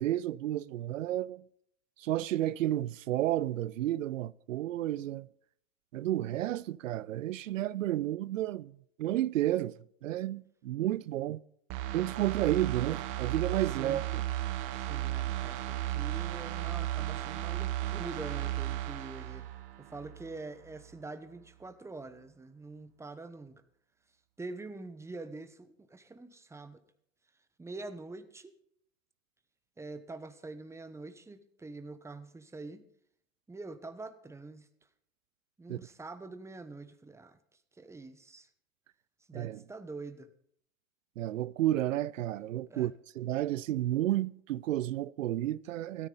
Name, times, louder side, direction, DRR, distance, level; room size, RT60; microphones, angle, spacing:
voice 1, 0.0-1.4 2.0-5.3 5.9-9.7 10.0-11.4 11.9-14.2 35.7-35.8 39.3-39.6 41.2-46.1, right 13 dB, 80° right, 0.5 m, -31 dB
dirty square, 11.7-20.4 20.7-20.8, right 14 dB, 45° right, 1.5 m, -35 dB
voice 2, 14.7-19.5 19.8-23.6 24.4-26.8 27.6-28.5 29.8-32.8 33.5-34.7 35.6-37.4 37.8-38.5 39.3-40.3 42.7-42.9, right 3 dB, 5° right, 1.0 m, -45 dB
16.0 x 13.5 x 4.0 m
hypercardioid pair, 105°, 39 cm